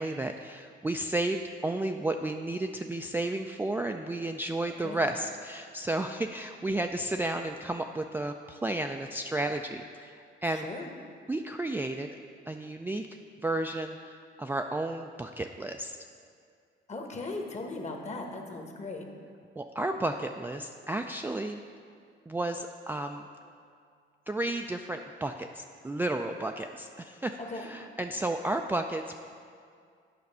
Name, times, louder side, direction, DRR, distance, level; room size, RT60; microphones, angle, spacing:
voice 1, 0.0-10.7 11.3-12.1 12.5-13.1 13.4-16.0 19.6-21.6 22.3-23.3 24.3-29.2, right 2 dB, 10° right, 4 dB, 0.3 m, -32 dB
voice 2, 10.5-10.9 16.9-19.0 27.4-27.7, left 2 dB, 35° left, 3 dB, 1.2 m, -38 dB
9.4 x 5.2 x 5.5 m, 2.2 s
cardioid pair, 90°, 20 cm